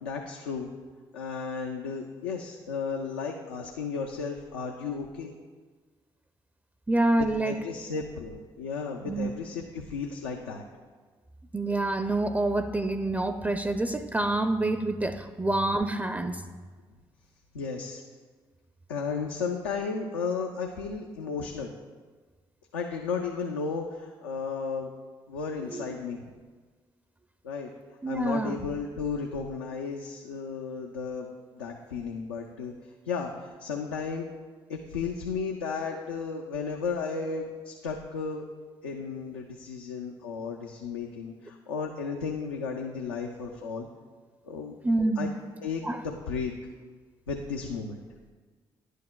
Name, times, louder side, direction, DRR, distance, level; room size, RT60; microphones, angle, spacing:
voice 1, 0.0-0.7 1.1-5.3 7.2-10.6 17.5-18.0 18.9-21.7 22.7-24.9 25.3-26.3 27.4-27.7 28.1-31.3 31.6-34.3 34.7-38.5 38.8-43.9 44.4-44.8 45.2-45.3 45.6-46.5 47.3-48.0, left 5 dB, 90° left, 0 dB, 0.4 m, -34 dB
voice 2, 6.9-7.6 9.0-9.3 11.5-16.4 25.7-25.9 28.0-28.6 44.8-45.3 45.8-46.0, right 2 dB, 15° right, 9 dB, 0.4 m, -27 dB
10.5 x 6.4 x 2.3 m, 1.4 s
hypercardioid pair, 45°, 12 cm